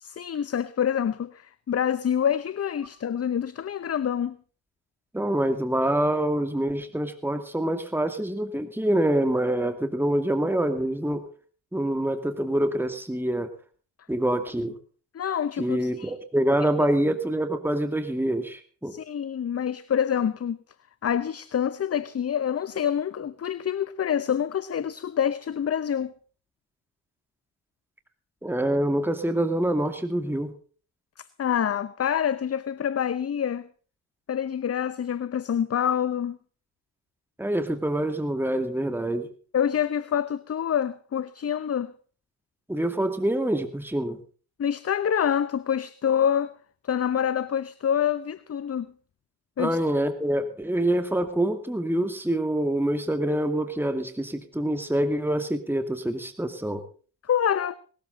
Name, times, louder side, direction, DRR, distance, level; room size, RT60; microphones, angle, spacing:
voice 1, 0.0-4.4 15.1-16.1 16.6-16.7 18.9-20.6 21.0-26.1 31.2-33.7 34.3-36.4 39.5-41.9 44.6-46.5 46.8-48.9 49.6-49.8 57.2-57.7, left 8 dB, 35° left, 0.8 m, -26 dB
voice 2, 5.1-11.3 11.7-13.5 14.1-14.8 15.6-18.9 28.4-30.5 37.4-39.3 42.7-44.2 49.6-56.8, right 1 dB, 5° right, 2.4 m, -26 dB
19.0 x 13.5 x 4.0 m
supercardioid pair, 55°, 45 cm